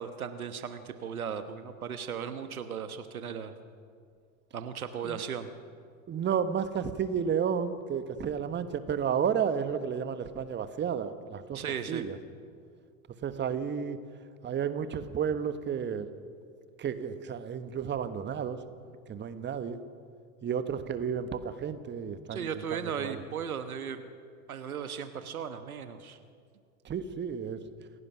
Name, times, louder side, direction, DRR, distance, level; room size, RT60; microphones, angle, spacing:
voice 1, 0.0-3.6 4.5-5.5 11.5-12.0 22.3-24.1 24.5-26.2, right 7 dB, 80° right, 10 dB, 1.3 m, -36 dB
voice 2, 6.1-11.6 11.9-12.2 13.2-14.0 14.4-16.1 16.8-18.6 19.1-19.8 20.4-23.2 26.8-27.6, right 7 dB, 25° right, 11 dB, 1.3 m, -32 dB
27.5 x 16.5 x 6.0 m, 2.2 s
figure-of-eight pair, 75°, 43 cm